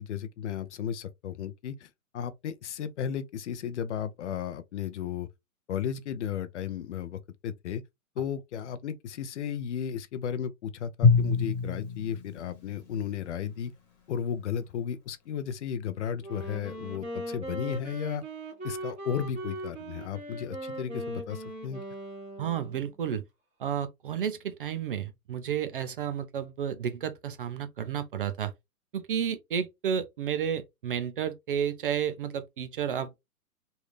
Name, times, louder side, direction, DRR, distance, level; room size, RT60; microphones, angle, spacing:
voice 1, 0.0-1.9 2.1-5.3 5.7-7.8 8.2-13.7 14.1-18.2 18.6-21.8, left 8 dB, 55° left, 0.6 m, -34 dB
Drum, 11.0-13.4, left 5 dB, 25° left, 1.4 m, -26 dB
Wind instrument woodwind instrument, 16.2-23.0, right 1 dB, 15° right, 1.5 m, -39 dB
voice 2, 22.4-23.2 23.6-28.5 28.9-33.2, right 8 dB, 40° right, 0.4 m, -31 dB
3.2 x 2.6 x 3.1 m
hypercardioid pair, 135°, 44 cm